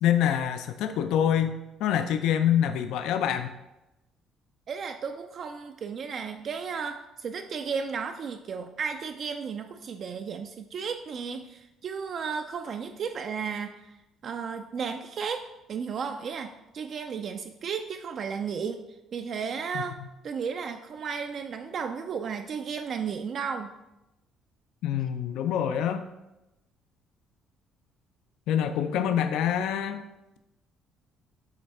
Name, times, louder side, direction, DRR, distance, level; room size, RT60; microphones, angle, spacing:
voice 1, 0.0-3.5 19.7-20.1 24.8-26.1 28.5-30.0, left 9 dB, 80° left, 8 dB, 0.4 m, -26 dB
voice 2, 4.7-13.7 14.2-15.4 15.7-18.8 19.1-20.0 20.2-23.7, right 6 dB, 40° right, 6 dB, 0.3 m, -34 dB
8.0 x 3.3 x 4.2 m, 0.94 s
cardioid pair, 165°, 0 cm